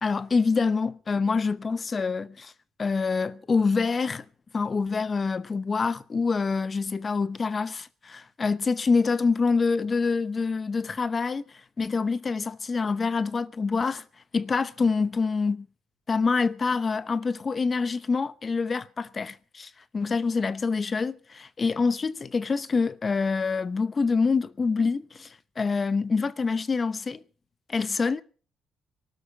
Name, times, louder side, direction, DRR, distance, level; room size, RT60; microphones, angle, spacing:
voice 1, 0.0-2.5 2.8-4.2 4.5-11.4 11.8-14.0 14.3-15.7 16.1-27.2 27.7-28.2, left 4 dB, 35° left, 0.8 m, -26 dB
19.0 x 12.5 x 4.6 m
cardioid pair, 90°, 0 cm